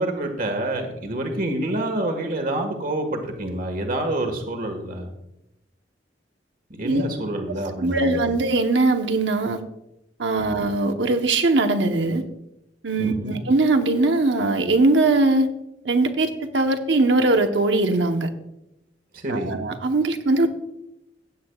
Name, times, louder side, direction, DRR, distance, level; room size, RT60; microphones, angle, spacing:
voice 1, 0.0-5.1 6.7-8.4 10.4-10.6 13.0-13.4 19.1-19.7, right 1 dB, 50° right, 4 dB, 1.6 m, -27 dB
voice 2, 7.8-9.6 10.2-12.2 12.8-15.5 15.8-18.3 19.3-20.5, right 2 dB, 80° right, 6 dB, 1.0 m, -21 dB
15.5 x 9.7 x 2.4 m, 0.86 s
head